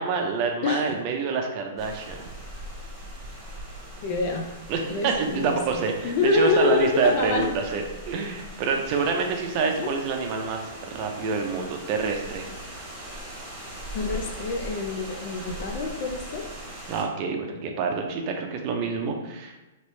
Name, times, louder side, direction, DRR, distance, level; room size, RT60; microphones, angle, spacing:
voice 1, 0.0-2.3 4.7-10.6 10.9-12.5 16.9-19.6, right 4 dB, 40° right, 3 dB, 0.6 m, -27 dB
voice 2, 0.6-1.0 4.0-4.5 4.9-7.5 9.8-10.0 13.9-16.5, left 3 dB, 50° left, 2 dB, 0.5 m, -26 dB
sound 1, 1.8-17.0, right 1 dB, 15° right, 1.1 m, -40 dB
3.1 x 2.9 x 3.1 m, 1.1 s
hypercardioid pair, 130°, 0 cm